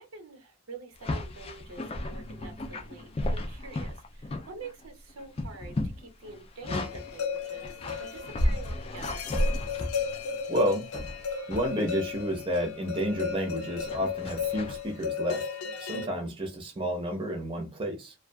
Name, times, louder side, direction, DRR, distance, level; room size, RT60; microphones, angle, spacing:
voice 1, 0.0-9.3 16.1-16.3, right 3 dB, 75° right, 0.7 m, -46 dB
sound 1, 1.0-4.8 5.1-7.1 7.6-10.4 10.9-11.7 12.1-12.4 13.8-14.8, left 1 dB, 25° left, 0.3 m, -33 dB
sound 2, 6.7-16.1, left 6 dB, 80° left, 0.5 m, -35 dB
voice 2, 10.5-10.9 11.5-15.5 15.8-18.1, equal, 25° right, 0.6 m, -30 dB
2.6 x 2.3 x 2.2 m
head